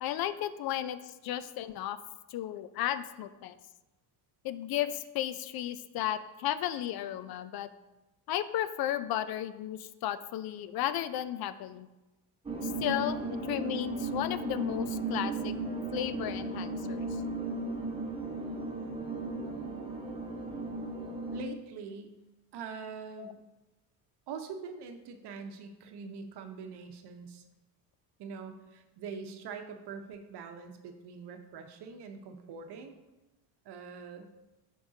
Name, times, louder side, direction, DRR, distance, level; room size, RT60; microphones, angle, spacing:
voice 1, 0.0-1.0 1.2-2.0 2.3-3.5 4.4-7.7 8.3-11.9 12.6-15.5 15.9-17.1 23.2-23.3, left 12 dB, 50° left, 13 dB, 0.5 m, -34 dB
sound 1, 12.5-21.4, right 2 dB, 10° right, 0.9 m, -35 dB
voice 2, 21.3-22.2 22.5-23.4 24.3-27.4 28.2-32.9 33.6-34.3, right 5 dB, 55° right, 6 dB, 0.9 m, -43 dB
11.0 x 3.7 x 2.8 m, 1.0 s
supercardioid pair, 90°, 47 cm